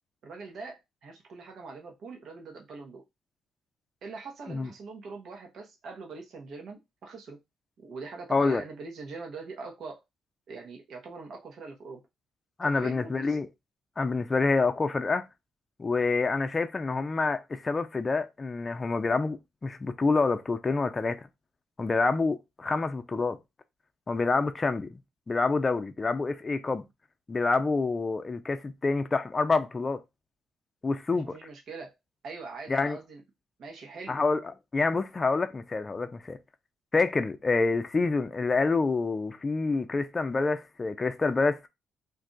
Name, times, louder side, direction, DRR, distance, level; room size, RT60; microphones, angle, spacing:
voice 1, 0.2-3.0 4.0-7.4 7.8-10.0 10.5-12.0 12.6-13.4 31.1-31.9 32.2-33.2 33.6-34.2, right 4 dB, 65° right, 1.0 m, -42 dB
voice 2, 8.3-8.6 12.6-13.5 14.0-15.2 15.8-21.2 21.8-23.4 24.1-25.0 25.3-26.8 27.3-30.0 30.8-31.4 32.7-33.0 34.1-34.4 34.7-36.4 36.9-41.7, left 3 dB, 30° left, 0.5 m, -27 dB
2.6 x 2.4 x 3.9 m
cardioid pair, 90°, 0 cm